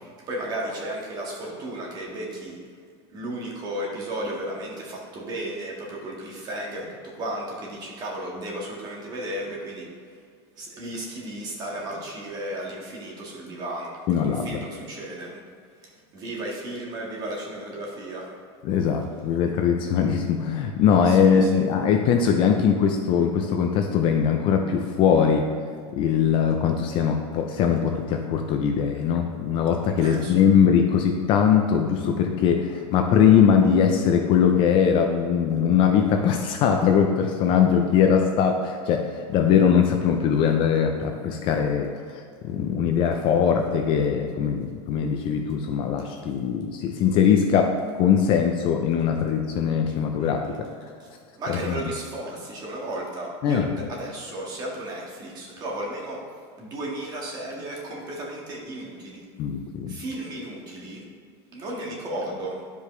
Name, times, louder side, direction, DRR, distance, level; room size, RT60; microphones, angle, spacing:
voice 1, 0.3-2.5 3.1-6.8 7.2-9.8 10.6-13.9 14.2-15.3 16.1-18.2 30.0-30.3 51.4-56.2 56.6-59.2 59.9-61.0 61.5-62.6, right 1 dB, 25° right, -3 dB, 1.7 m, -34 dB
voice 2, 14.1-14.6 18.6-25.5 25.9-50.4 51.5-51.9 53.4-53.9 59.4-60.0, left 7 dB, 35° left, 4 dB, 0.6 m, -21 dB
11.5 x 5.1 x 3.2 m, 2.1 s
supercardioid pair, 160°, 15 cm